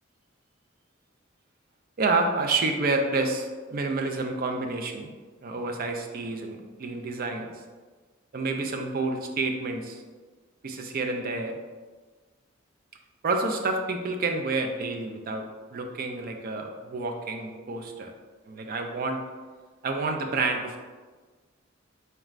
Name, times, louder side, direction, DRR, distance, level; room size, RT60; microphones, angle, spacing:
voice 1, 2.0-5.1 5.4-7.6 8.3-10.0 10.6-11.6 13.2-18.1 18.5-19.2 19.8-20.8, right 3 dB, 50° right, 4 dB, 0.4 m, -29 dB
4.4 x 3.1 x 2.4 m, 1.4 s
head